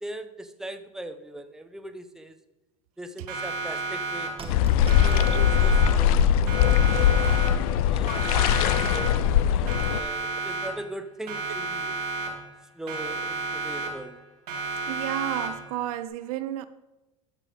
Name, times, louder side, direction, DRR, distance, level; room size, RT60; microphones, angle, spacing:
voice 1, 0.0-2.4 3.0-4.6 5.0-7.1 7.9-11.9 12.7-14.2, right 1 dB, 5° right, 0.8 m, -40 dB
Siren, 3.3-4.6 4.9-6.2 6.5-7.8 8.1-9.4 9.7-11.0 11.3-12.6 12.9-14.2 14.5-15.8, right 3 dB, 90° right, 2.1 m, -32 dB
sound 1, 4.4-6.9 7.5-7.6 7.9-8.0 8.6-8.9 9.2-9.5, right 5 dB, 30° right, 1.7 m, -38 dB
sound 2, 4.5-10.0, left 9 dB, 70° left, 0.5 m, -21 dB
voice 2, 14.9-16.7, right 13 dB, 75° right, 0.6 m, -31 dB
14.0 x 5.6 x 3.7 m
hypercardioid pair, 95°, 19 cm